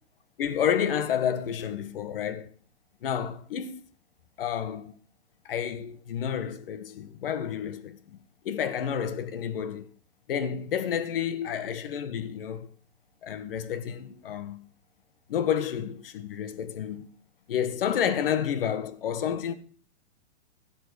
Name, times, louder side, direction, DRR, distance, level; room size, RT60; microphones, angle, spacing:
voice 1, 0.4-2.5 3.0-3.8 4.4-4.9 5.4-8.2 8.4-9.8 10.3-12.7 13.2-14.6 15.3-17.1 17.5-19.5, left 8 dB, 50° left, 1.6 m, -30 dB
16.5 x 7.5 x 5.2 m
hypercardioid pair, 175°, 35 cm